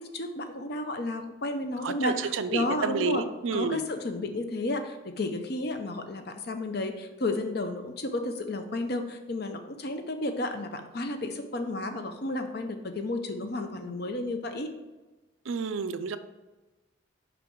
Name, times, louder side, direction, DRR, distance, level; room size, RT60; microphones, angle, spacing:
voice 1, 0.0-3.3 3.5-14.7, left 2 dB, 50° left, 7 dB, 0.7 m, -32 dB
voice 2, 1.8-3.8 15.5-16.2, right 5 dB, 80° right, 11 dB, 0.5 m, -30 dB
5.9 x 5.2 x 3.7 m, 1.2 s
head